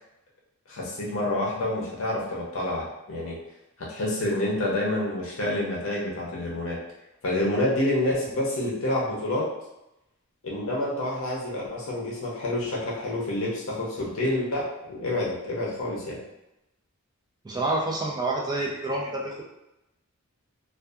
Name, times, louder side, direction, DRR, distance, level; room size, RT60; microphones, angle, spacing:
voice 1, 0.7-3.4 3.8-6.8 7.2-9.5 10.4-16.2, left 1 dB, 60° left, -4 dB, 0.6 m, -28 dB
voice 2, 17.4-19.4, right 2 dB, 20° right, -2 dB, 0.4 m, -28 dB
2.6 x 2.3 x 2.3 m, 0.89 s
head